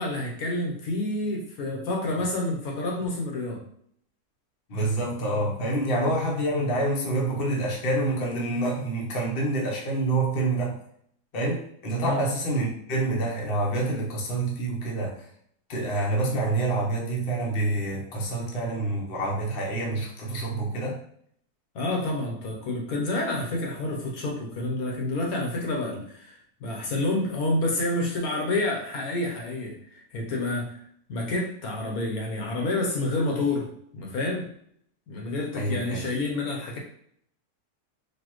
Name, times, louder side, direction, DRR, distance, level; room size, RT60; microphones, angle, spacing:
voice 1, 0.0-3.6 12.0-12.2 21.7-30.8 31.1-34.5 35.1-36.8, left 2 dB, 70° left, 0 dB, 1.3 m, -29 dB
voice 2, 4.7-10.8 11.3-15.2 15.7-21.0 35.5-36.1, right 2 dB, 40° left, -3 dB, 1.0 m, -27 dB
4.3 x 2.8 x 3.0 m, 0.66 s
omnidirectional pair, 1.6 m